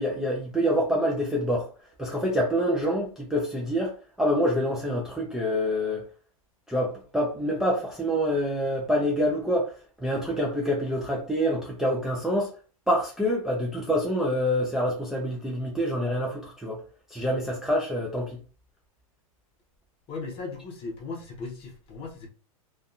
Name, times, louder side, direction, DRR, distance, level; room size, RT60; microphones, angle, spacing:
voice 1, 0.0-1.7 2.0-3.9 4.2-6.1 6.7-9.7 10.0-12.5 12.9-16.8 17.1-18.4, equal, 5° right, 0.4 m, -26 dB
voice 2, 20.1-22.3, left 4 dB, 30° left, 0.8 m, -37 dB
2.6 x 2.3 x 2.5 m
hypercardioid pair, 125°, 18 cm